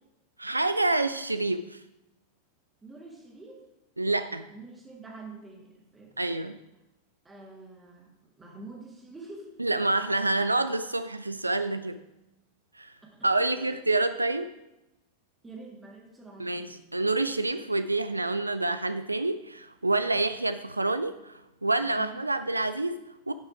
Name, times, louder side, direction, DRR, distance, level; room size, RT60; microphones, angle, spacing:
voice 1, 0.4-1.8 4.0-4.5 6.2-6.6 9.6-12.0 12.8-12.9 13.2-14.5 16.4-23.3, right 2 dB, 85° right, 11 dB, 0.3 m, -27 dB
voice 2, 2.8-3.7 4.1-6.1 7.2-9.6 13.0-13.3 13.6-13.8 15.4-16.8 22.0-22.2, right 3 dB, 10° right, 0 dB, 1.8 m, -47 dB
9.8 x 5.5 x 4.8 m, 0.94 s
figure-of-eight pair, 90°, 0 cm